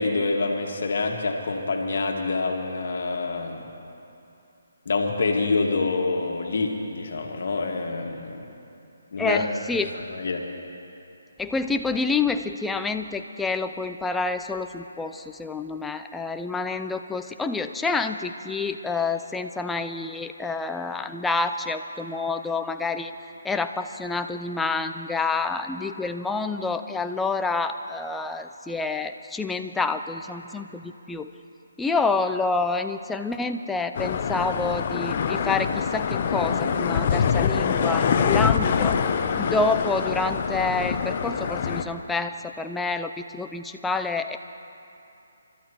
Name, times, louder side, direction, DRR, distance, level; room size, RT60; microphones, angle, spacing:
voice 1, 0.0-3.7 4.9-8.4 9.1-9.5 9.9-10.4, left 3 dB, 60° left, 2 dB, 1.8 m, -26 dB
voice 2, 9.2-9.9 11.4-23.1 23.4-31.3 31.8-39.0 39.4-44.4, left 3 dB, 5° left, 7 dB, 0.4 m, -28 dB
sound 1, 33.9-41.8, left 6 dB, 45° left, 0.8 m, -24 dB
29.5 x 13.0 x 3.0 m, 2.7 s
figure-of-eight pair, 145°, 0 cm